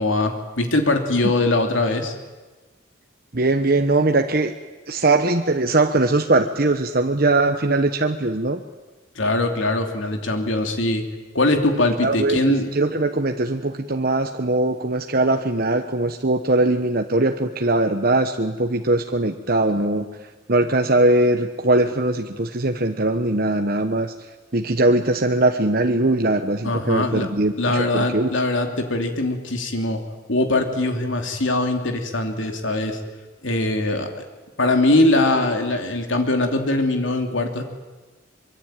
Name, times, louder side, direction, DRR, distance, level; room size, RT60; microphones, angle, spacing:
voice 1, 0.0-2.2 9.1-11.0 11.3-12.7 26.6-27.3 27.6-30.0 30.3-33.0 33.4-34.2 34.6-37.6, left 2 dB, 75° left, 5 dB, 3.0 m, -21 dB
voice 2, 3.3-4.5 4.9-8.6 12.0-20.1 20.5-24.1 24.5-28.3, right 2 dB, 45° right, 5 dB, 1.1 m, -20 dB
25.0 x 23.5 x 9.1 m, 1.3 s
head